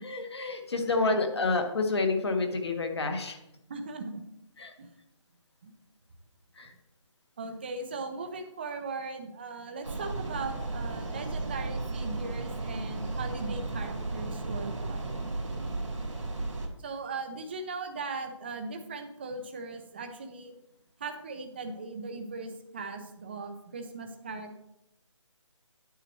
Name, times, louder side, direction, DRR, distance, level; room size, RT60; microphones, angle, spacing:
voice 1, 0.0-3.4 4.6-4.7 6.5-6.7, left 3 dB, 55° left, 4 dB, 1.6 m, -29 dB
voice 2, 3.7-4.2 4.8-4.9 5.6-5.7 7.4-15.1 16.8-20.5 21.0-24.6, right 3 dB, 20° right, 6 dB, 0.7 m, -38 dB
sound 1, 9.8-16.7, right 2 dB, 75° right, 2.4 m, -34 dB
9.1 x 8.5 x 3.1 m, 0.82 s
figure-of-eight pair, 170°, 16 cm